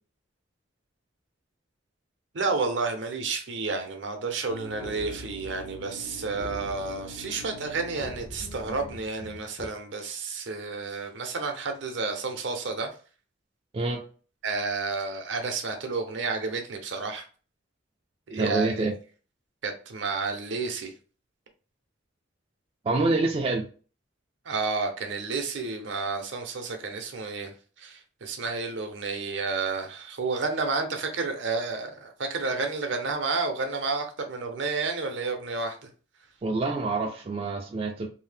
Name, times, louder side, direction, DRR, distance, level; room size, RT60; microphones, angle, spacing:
voice 1, 2.3-12.9 14.4-17.3 18.3-18.9 19.6-20.9 24.5-35.8, right 4 dB, 70° right, 0.6 m, -31 dB
sound 1, 4.5-9.7, equal, 75° left, 0.7 m, -42 dB
voice 2, 18.3-18.9 22.8-23.7 36.4-38.1, right 3 dB, 30° right, 0.3 m, -26 dB
2.7 x 2.0 x 3.3 m
head